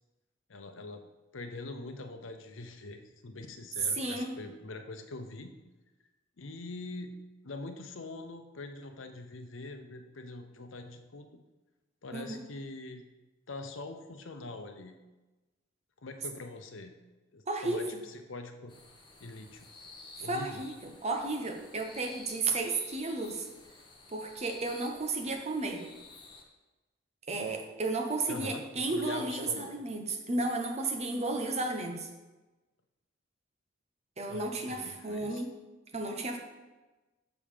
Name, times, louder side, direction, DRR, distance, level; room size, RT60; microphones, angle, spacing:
voice 1, 0.5-1.0 1.3-5.6 6.4-7.1 7.4-11.3 12.0-13.0 13.5-15.0 16.0-16.9 17.3-18.7 19.2-19.7 20.2-20.6 28.3-29.8 34.3-35.5, left 2 dB, 80° left, 6 dB, 0.8 m, -43 dB
voice 2, 4.0-4.4 12.1-12.4 17.5-17.8 20.3-23.5 24.1-25.8 27.3-32.1 34.2-35.5 35.9-36.4, right 2 dB, 35° right, 3 dB, 1.0 m, -33 dB
sound 1, 18.7-26.4, left 3 dB, 25° left, 1.0 m, -53 dB
7.0 x 5.3 x 5.0 m, 1.1 s
head